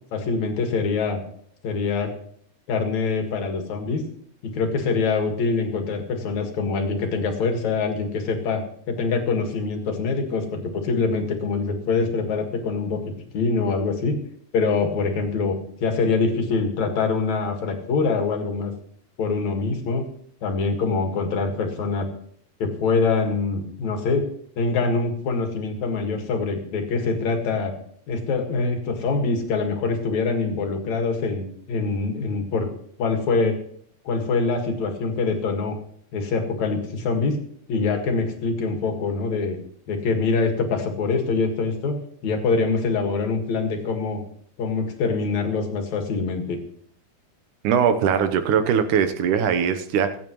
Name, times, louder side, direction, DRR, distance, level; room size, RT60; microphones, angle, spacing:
voice 1, 0.1-1.2 1.6-2.1 2.7-4.0 4.4-14.2 14.5-18.7 19.2-20.0 20.4-22.1 22.6-24.3 24.6-27.7 28.1-32.7 33.0-33.6 34.0-35.8 36.1-37.4 37.7-39.6 39.9-42.0 42.2-44.2 44.6-46.6, left 4 dB, 65° left, 3 dB, 3.0 m, -24 dB
voice 2, 47.6-50.2, right 7 dB, 80° right, 9 dB, 2.4 m, -21 dB
25.0 x 8.9 x 3.1 m, 0.63 s
omnidirectional pair, 3.5 m